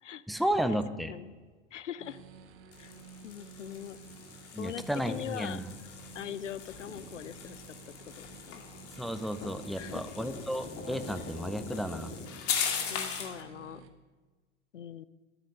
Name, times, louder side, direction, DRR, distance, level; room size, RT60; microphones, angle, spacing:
voice 1, 0.3-1.1 4.5-5.7 9.0-12.1, equal, ahead, 10 dB, 0.6 m, -33 dB
voice 2, 1.7-2.2 2.8-2.9 3.2-4.0 4.6-5.6 6.1-8.6 9.8-10.1 12.9-13.8 14.7-15.0, left 10 dB, 75° left, 16 dB, 0.7 m, -42 dB
sound 1, 2.0-13.9, right 5 dB, 35° right, 1.3 m, -53 dB
sound 2, 2.7-13.4, left 7 dB, 40° left, 2.1 m, -39 dB
13.0 x 9.1 x 6.4 m, 1.4 s
figure-of-eight pair, 85°, 36 cm